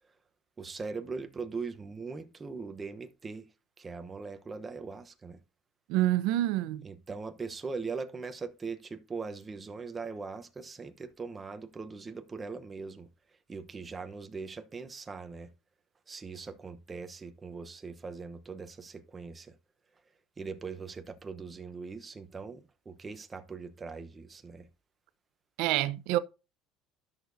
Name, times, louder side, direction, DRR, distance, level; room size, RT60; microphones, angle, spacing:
voice 1, 0.6-3.5 3.8-5.4 6.8-13.1 13.5-15.5 16.1-19.5 20.4-24.7, right 4 dB, 20° right, 0.9 m, -40 dB
voice 2, 5.9-6.8 25.6-26.2, right 15 dB, 70° right, 0.7 m, -27 dB
12.5 x 6.6 x 2.7 m
cardioid pair, 140°, 0 cm